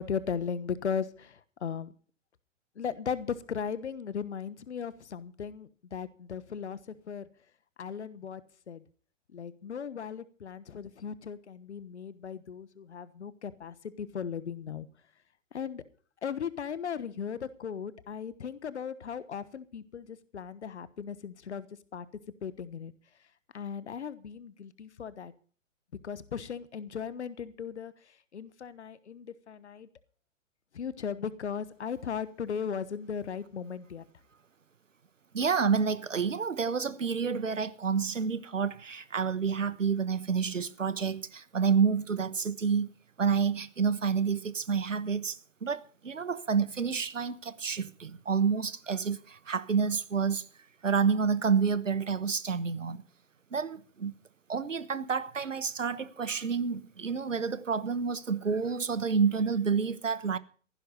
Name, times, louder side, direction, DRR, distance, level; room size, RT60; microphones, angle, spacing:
voice 1, 0.0-1.9 2.8-6.8 7.1-7.3 7.8-8.4 8.7-8.8 9.3-14.9 15.5-15.8 16.2-21.7 21.9-22.1 22.4-22.9 23.5-25.3 26.0-27.9 28.3-29.9 30.7-34.0, left 7 dB, 60° left, 1.3 m, -37 dB
voice 2, 35.3-42.9 43.2-50.5 50.8-53.0 53.5-54.1 54.5-60.4, right 6 dB, 75° right, 1.2 m, -29 dB
15.0 x 11.5 x 5.5 m
figure-of-eight pair, 115°, 38 cm